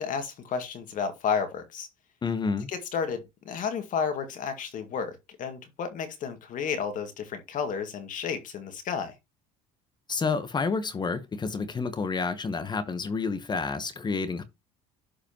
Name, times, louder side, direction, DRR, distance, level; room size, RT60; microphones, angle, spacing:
voice 1, 0.0-1.9 2.7-9.1, left 6 dB, 50° left, 2.0 m, -32 dB
voice 2, 2.2-2.7 10.1-14.4, left 4 dB, 25° left, 1.0 m, -29 dB
11.5 x 4.9 x 2.9 m
cardioid pair, 110°, 17 cm